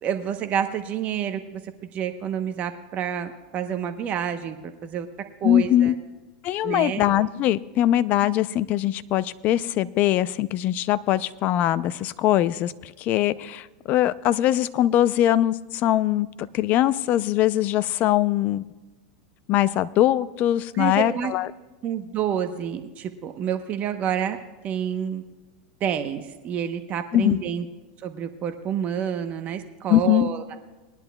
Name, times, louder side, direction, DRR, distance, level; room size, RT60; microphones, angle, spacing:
voice 1, 0.0-1.6 1.9-5.1 5.4-5.9 6.6-7.1 20.7-21.3 21.8-24.4 24.6-25.2 25.8-27.7 28.0-30.4, right 9 dB, 35° right, 7 dB, 0.9 m, -28 dB
voice 2, 5.4-5.9 6.4-18.6 19.5-21.5 27.1-27.4 29.9-30.3, left 13 dB, 40° left, 15 dB, 0.4 m, -22 dB
21.5 x 10.5 x 2.3 m, 1.2 s
supercardioid pair, 130°, 4 cm